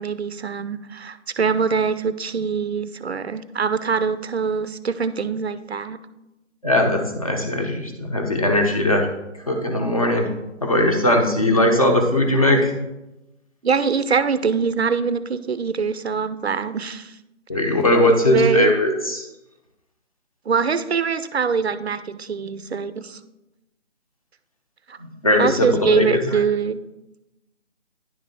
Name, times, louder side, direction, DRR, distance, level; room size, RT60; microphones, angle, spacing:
voice 1, 0.0-6.0 13.6-17.1 17.6-17.7 18.1-18.7 20.5-23.2 24.9-25.0 25.4-26.8, right 5 dB, 60° right, 13 dB, 0.5 m, -23 dB
voice 2, 6.6-9.1 9.5-10.3 10.6-12.7 17.5-19.2 25.0-26.3, left 1 dB, 30° left, 2 dB, 0.9 m, -19 dB
10.0 x 3.5 x 5.1 m, 0.95 s
figure-of-eight pair, 175°, 37 cm